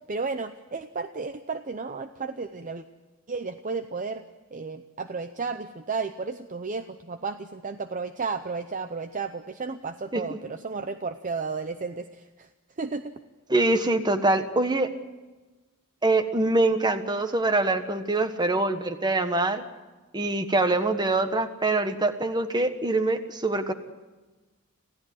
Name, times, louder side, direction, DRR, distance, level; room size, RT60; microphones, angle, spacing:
voice 1, 0.1-2.8 3.3-4.2 4.5-12.5 12.8-13.0, right 4 dB, 35° right, 9 dB, 0.7 m, -33 dB
voice 2, 13.5-14.9 16.0-19.6 20.1-23.7, right 2 dB, 20° right, 9 dB, 1.3 m, -24 dB
26.5 x 16.0 x 7.8 m, 1.2 s
head